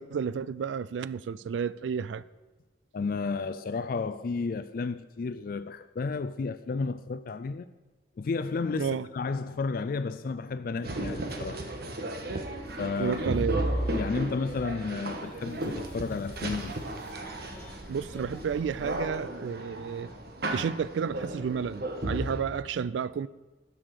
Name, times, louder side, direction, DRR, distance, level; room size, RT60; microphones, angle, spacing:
voice 1, 0.0-2.2 8.8-9.1 13.0-13.6 17.9-20.1 20.5-23.3, right 6 dB, 85° right, 0.3 m, -31 dB
voice 2, 2.9-7.7 8.2-11.7 12.8-13.4 13.9-16.7, left 4 dB, 50° left, 0.4 m, -32 dB
sound 1, 10.8-22.4, right 1 dB, 60° right, 1.3 m, -34 dB
sound 2, 12.4-19.1, equal, 10° left, 1.6 m, -49 dB
11.0 x 7.0 x 6.5 m
head